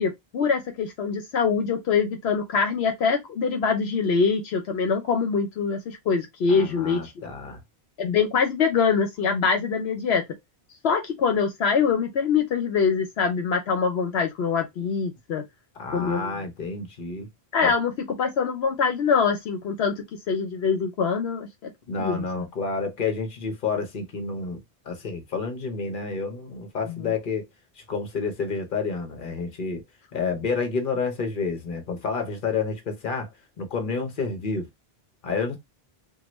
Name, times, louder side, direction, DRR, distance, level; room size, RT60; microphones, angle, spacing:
voice 1, 0.0-7.2 8.0-10.2 10.8-15.4 15.9-16.4 17.5-17.9 18.2-19.9 20.3-21.7 22.0-22.4 26.9-27.1, left 5 dB, 80° left, 1.0 m, -24 dB
voice 2, 6.5-7.6 15.8-17.3 17.6-17.7 21.9-24.6 24.9-27.4 27.8-29.8 30.1-33.3 33.6-34.7 35.2-35.6, left 4 dB, 55° left, 1.1 m, -29 dB
3.7 x 2.2 x 3.0 m
omnidirectional pair, 1.1 m